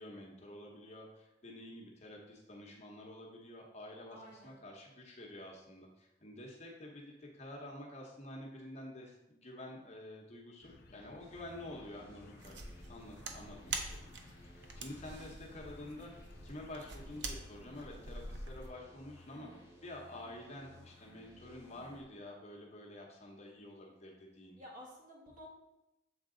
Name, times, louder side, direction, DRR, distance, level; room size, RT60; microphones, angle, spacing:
voice 1, 0.0-12.6 12.9-16.1 16.4-19.5 19.8-24.6, left 1 dB, 40° left, -1 dB, 1.0 m, -49 dB
voice 2, 4.1-4.6 19.3-19.7 24.6-25.5, left 1 dB, 50° right, -3 dB, 1.8 m, -53 dB
sound 1, 10.6-17.4, left 2 dB, 55° left, 0.5 m, -59 dB
sound 2, 11.2-22.0, left 1 dB, 15° right, 1.5 m, -59 dB
sound 3, 12.4-18.7, right 3 dB, 70° right, 0.7 m, -45 dB
7.1 x 3.9 x 3.8 m, 0.93 s
head